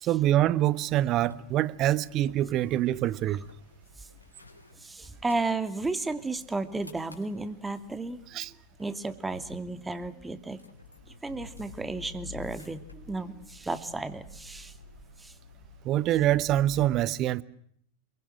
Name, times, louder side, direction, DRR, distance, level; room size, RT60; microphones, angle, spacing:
voice 1, 0.0-3.4 8.3-8.5 15.8-17.4, right 13 dB, 35° right, 1.2 m, -25 dB
sound 1, 0.7-16.9, left 5 dB, 85° left, 4.0 m, -51 dB
voice 2, 4.8-8.2 8.8-10.6 11.2-14.7 15.2-15.3, right 3 dB, 10° right, 2.5 m, -33 dB
29.0 x 22.5 x 7.9 m
figure-of-eight pair, 90°, 0 cm